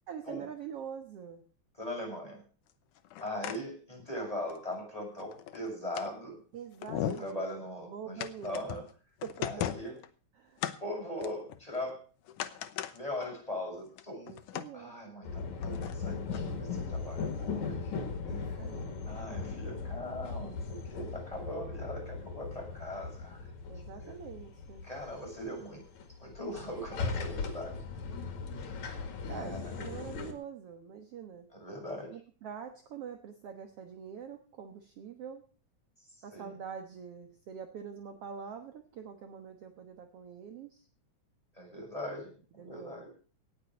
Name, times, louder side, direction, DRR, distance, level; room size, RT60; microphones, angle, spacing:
voice 1, 0.1-1.4 6.5-7.4 7.9-8.8 9.2-9.5 10.4-10.6 14.3-15.0 18.3-19.0 23.7-24.9 29.3-31.5 32.1-35.5 36.2-40.8 42.6-43.1, right 7 dB, 60° right, 6 dB, 2.1 m, -44 dB
voice 2, 1.7-2.4 3.2-6.4 7.0-8.8 9.4-10.0 10.8-12.0 12.9-14.4 14.7-18.6 19.0-23.5 23.9-24.1 24.8-25.8 26.2-27.8 29.2-29.9 31.5-32.1 36.1-36.5 41.5-43.1, left 1 dB, 10° left, -1 dB, 6.8 m, -40 dB
sound 1, 3.0-3.6 4.0-4.1 4.5-4.6 5.2-6.1 6.5-6.6 6.8-7.3 8.2-8.9 9.2-10.1 10.6-10.8 11.2-11.9 12.3-13.0 13.3-13.4 13.8-14.7 15.6-15.9 16.3-16.4, left 11 dB, 85° left, 2.4 m, -37 dB
sound 2, 15.2-30.3, left 4 dB, 65° left, 3.3 m, -38 dB
18.0 x 7.9 x 6.4 m, 0.38 s
omnidirectional pair, 3.5 m